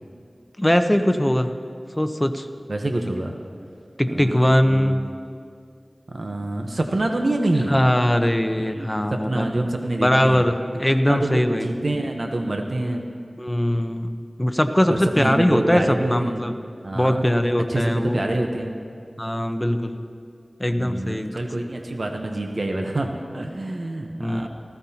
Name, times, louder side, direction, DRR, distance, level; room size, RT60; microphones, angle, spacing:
voice 1, 0.6-1.6 2.0-2.5 4.0-5.0 7.7-9.5 10.0-11.7 13.4-16.5 16.9-18.3 19.2-20.0 20.6-21.3 24.2-24.5, equal, 15° left, 7 dB, 0.8 m, -21 dB
voice 2, 2.7-3.3 4.0-5.0 6.1-7.7 8.6-10.4 11.1-13.0 14.9-16.4 16.8-17.3 17.7-18.7 20.8-24.5, right 1 dB, 65° right, 3 dB, 0.9 m, -26 dB
19.0 x 15.0 x 2.9 m, 2.3 s
wide cardioid pair, 55°, 0 cm